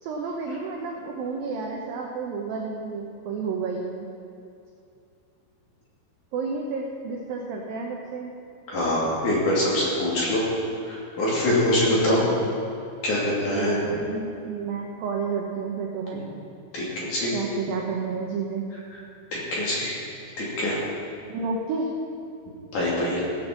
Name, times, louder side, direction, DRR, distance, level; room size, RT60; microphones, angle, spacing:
voice 1, 0.0-4.1 6.3-8.3 12.0-12.5 13.5-16.2 17.3-18.7 21.3-22.0, right 4 dB, 75° right, 0 dB, 2.1 m, -31 dB
voice 2, 8.7-10.4 10.8-12.2 13.0-13.7 16.7-17.3 19.3-19.9 20.4-20.8 22.7-23.2, left 1 dB, 45° left, -6 dB, 3.7 m, -24 dB
17.5 x 6.6 x 7.4 m, 2.5 s
omnidirectional pair, 5.4 m